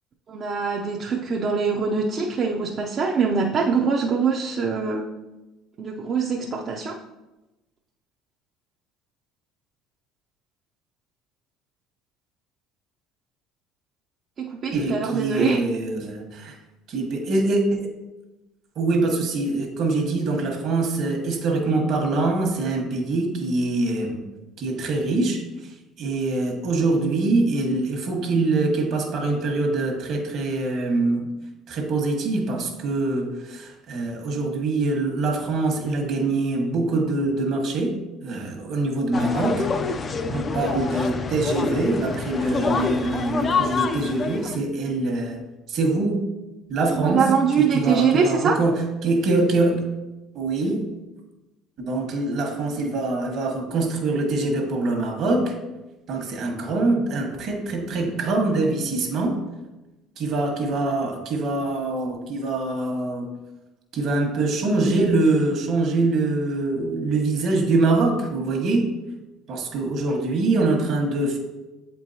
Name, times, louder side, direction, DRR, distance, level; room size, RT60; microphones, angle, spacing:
voice 1, 0.3-5.0 5.8-7.0 14.4-15.6 46.9-48.6, right 5 dB, 45° right, -1 dB, 0.6 m, -23 dB
voice 2, 14.7-16.5 16.9-17.9 18.8-24.2 24.6-25.4 26.0-31.2 31.7-38.0 38.2-39.7 40.3-45.4 45.7-46.2 46.7-47.3 47.6-49.8 50.3-50.9 51.8-55.5 56.1-59.4 60.2-63.3 63.9-68.9 69.5-71.4, right 2 dB, 60° right, 3 dB, 1.3 m, -24 dB
sound 1, 39.1-44.6, left 4 dB, 30° left, 0.4 m, -27 dB
7.5 x 4.5 x 2.7 m, 1.0 s
supercardioid pair, 105°, 0 cm